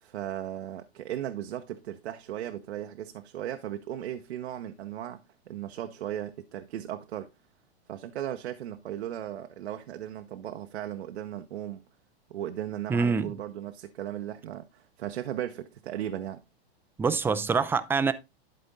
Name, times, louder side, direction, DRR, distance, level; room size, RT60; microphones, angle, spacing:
voice 1, 0.0-7.3 7.9-11.8 12.3-16.4, right 11 dB, 85° right, 0.9 m, -36 dB
voice 2, 12.9-13.4 17.0-18.1, right 5 dB, 5° right, 0.4 m, -25 dB
11.5 x 4.3 x 3.8 m
hypercardioid pair, 130°, 32 cm